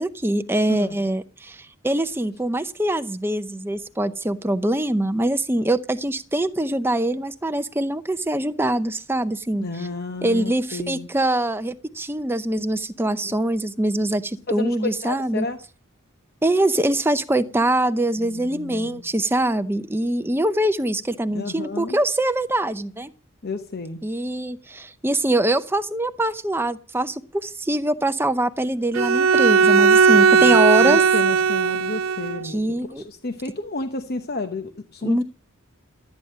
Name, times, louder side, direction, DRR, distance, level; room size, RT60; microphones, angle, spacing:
voice 1, 0.0-9.7 10.2-15.5 16.4-23.1 24.0-31.0 32.4-33.0 35.0-35.2, right 1 dB, 10° right, 10 dB, 0.6 m, -23 dB
voice 2, 9.6-11.1 13.2-13.3 14.5-15.6 18.2-19.0 21.3-22.0 23.4-24.0 30.1-30.6 30.8-32.6 33.0-35.2, left 3 dB, 50° left, 8 dB, 0.9 m, -31 dB
Bowed string instrument, 28.9-32.5, right 5 dB, 75° right, 0.6 m, -17 dB
13.0 x 9.4 x 6.3 m, 0.39 s
head